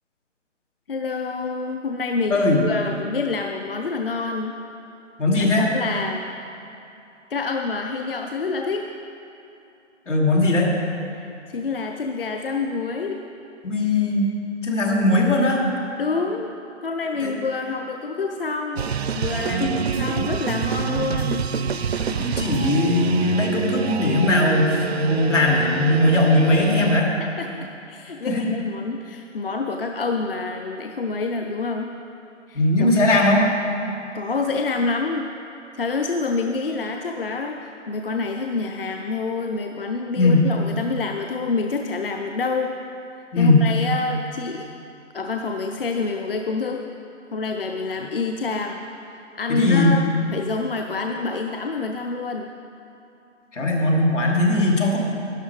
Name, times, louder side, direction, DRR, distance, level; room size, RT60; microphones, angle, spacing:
voice 1, 0.9-4.5 5.4-6.2 7.3-8.9 11.1-13.2 16.0-16.5 16.8-19.7 20.0-21.5 27.2-31.9 32.5-32.9 34.1-35.3 35.7-42.8 43.4-44.7 45.1-46.9 47.3-50.0 50.3-52.5, left 4 dB, 50° left, 4 dB, 0.6 m, -27 dB
voice 2, 2.3-2.7 5.2-5.7 10.1-10.7 13.6-14.3 14.6-15.6 17.2-17.4 19.6-19.8 22.1-27.1 28.2-28.5 32.5-33.5 40.2-40.4 43.3-43.6 49.5-50.0 53.5-55.0, left 2 dB, 75° left, -1 dB, 2.7 m, -19 dB
sound 1, 18.8-27.0, right 7 dB, 60° right, 0.5 m, -27 dB
12.5 x 11.0 x 4.7 m, 2.8 s
hypercardioid pair, 170°, 37 cm